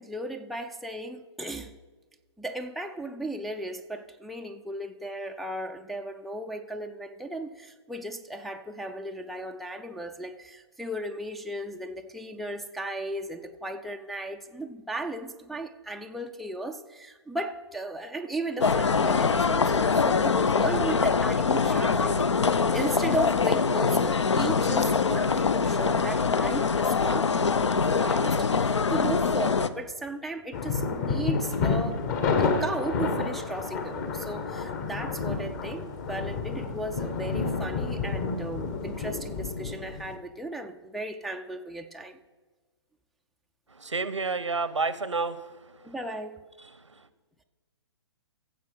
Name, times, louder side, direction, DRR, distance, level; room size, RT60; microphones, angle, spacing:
voice 1, 0.0-1.7 2.4-32.0 32.4-42.2 45.8-46.4, right 1 dB, ahead, 0.3 m, -36 dB
sound 1, 18.6-29.7, left 5 dB, 75° left, 0.6 m, -24 dB
sound 2, 30.5-40.1, left 4 dB, 40° left, 1.4 m, -30 dB
voice 2, 43.7-45.9 46.6-47.1, right 4 dB, 90° right, 0.8 m, -31 dB
14.5 x 7.5 x 5.5 m
figure-of-eight pair, 125°, 15 cm